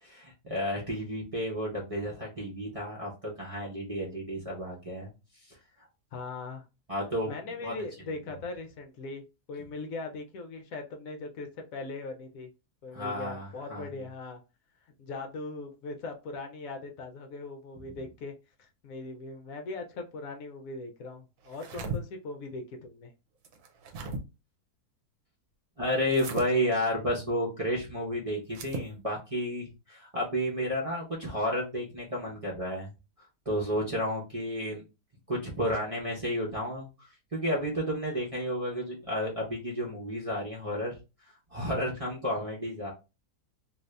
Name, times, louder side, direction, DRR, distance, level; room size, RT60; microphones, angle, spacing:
voice 1, 0.0-5.1 5.5-5.6 6.9-7.3 7.6-7.7 12.9-13.9 25.8-32.9 33.4-34.8 35.3-41.0 41.5-42.9, equal, 30° right, -5 dB, 0.7 m, -32 dB
voice 2, 6.1-6.6 7.3-12.5 12.8-14.4 15.0-18.3 18.6-23.1, left 3 dB, 70° left, 4 dB, 0.9 m, -40 dB
sound 1, 21.4-22.0 23.4-24.2 26.1-26.5 28.5-28.9, right 3 dB, 65° right, 1.0 m, -37 dB
2.7 x 2.6 x 3.2 m, 0.28 s
omnidirectional pair, 1.6 m